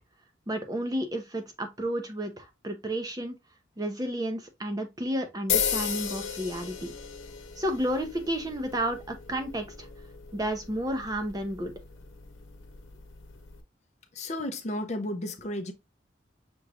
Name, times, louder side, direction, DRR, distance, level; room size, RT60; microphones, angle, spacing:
voice 1, 0.5-3.3 3.8-6.9 7.6-9.9 10.3-11.7, right 1 dB, 20° right, 0.6 m, -31 dB
sound 1, 5.5-13.6, left 7 dB, 85° left, 1.0 m, -35 dB
voice 2, 14.1-15.7, left 1 dB, 35° left, 0.6 m, -33 dB
6.1 x 3.0 x 2.4 m
head